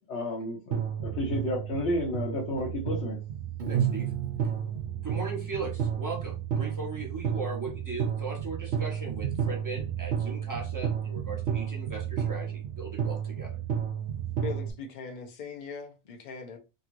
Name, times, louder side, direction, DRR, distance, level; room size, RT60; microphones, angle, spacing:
voice 1, 0.1-3.2 5.1-5.2, left 1 dB, 75° left, 1.0 m, -32 dB
sound 1, 0.7-14.7, right 8 dB, 90° right, 1.0 m, -32 dB
Piano, 3.6-6.5, left 1 dB, 50° right, 0.7 m, -45 dB
voice 2, 3.7-4.1 5.0-13.6, right 3 dB, 20° right, 0.8 m, -38 dB
voice 3, 14.4-16.6, left 5 dB, 50° left, 0.7 m, -40 dB
2.9 x 2.9 x 2.4 m
omnidirectional pair, 1.2 m